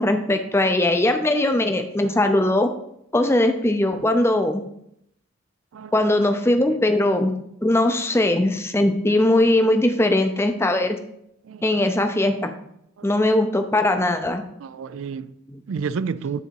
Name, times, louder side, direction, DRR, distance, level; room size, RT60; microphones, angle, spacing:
voice 1, 0.0-2.7 3.1-4.6 5.9-7.3 7.6-11.0 11.6-12.5 13.0-14.4 15.5-15.6, left 1 dB, 10° left, 0.5 m, -20 dB
voice 2, 14.6-15.3 15.7-16.4, right 5 dB, 75° right, 0.4 m, -30 dB
9.0 x 4.0 x 4.6 m
head